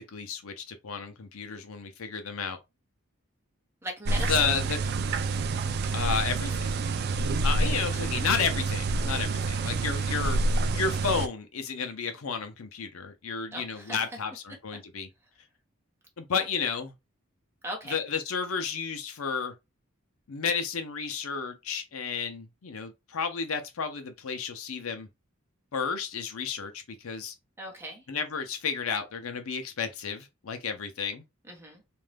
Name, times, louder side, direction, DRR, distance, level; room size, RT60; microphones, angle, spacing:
voice 1, 0.0-2.6 4.2-4.8 5.9-6.7 7.4-10.4 10.7-15.1 16.2-16.9 17.8-19.5 20.3-25.1 25.7-27.3 28.1-31.2, left 6 dB, 80° left, 0.6 m, -32 dB
voice 2, 3.8-4.7 7.4-7.7 13.5-14.0 17.6-18.0 27.6-28.0 31.5-31.8, right 1 dB, 10° right, 0.8 m, -38 dB
sound 1, 4.1-11.3, right 3 dB, 50° right, 0.3 m, -28 dB
2.6 x 2.2 x 3.3 m
head